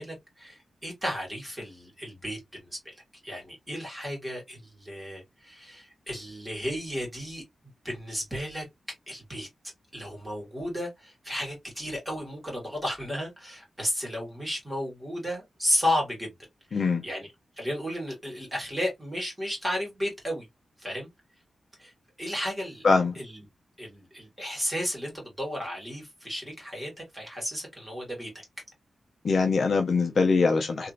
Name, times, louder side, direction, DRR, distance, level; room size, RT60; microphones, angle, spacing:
voice 1, 0.0-2.9 3.2-7.4 7.8-8.6 9.1-9.5 9.9-16.3 16.7-17.3 17.6-20.5 20.8-21.1 21.8-21.9 22.2-22.9 23.2-23.4 23.8-28.3, equal, 10° right, 1.8 m, -33 dB
voice 2, 16.7-17.0 22.8-23.2 29.2-30.9, left 4 dB, 50° left, 0.5 m, -23 dB
3.0 x 2.7 x 2.4 m
wide cardioid pair, 165°, 0 cm